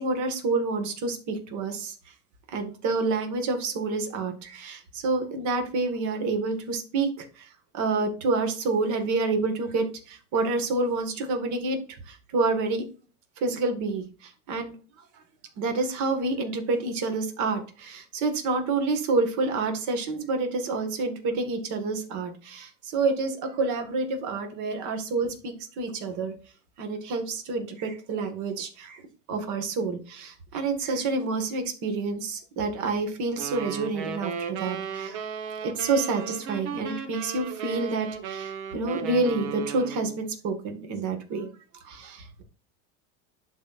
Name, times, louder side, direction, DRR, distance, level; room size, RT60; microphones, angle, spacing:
voice 1, 0.0-1.9 2.5-11.8 12.1-12.9 13.4-14.8 15.6-26.3 26.8-29.0 29.3-35.2 35.6-41.5 41.7-42.4, right 3 dB, 50° right, 5 dB, 1.8 m, -28 dB
sound 1, 33.4-40.2, right 6 dB, 65° right, 1.4 m, -35 dB
12.0 x 4.2 x 2.5 m, 0.39 s
supercardioid pair, 130°, 37 cm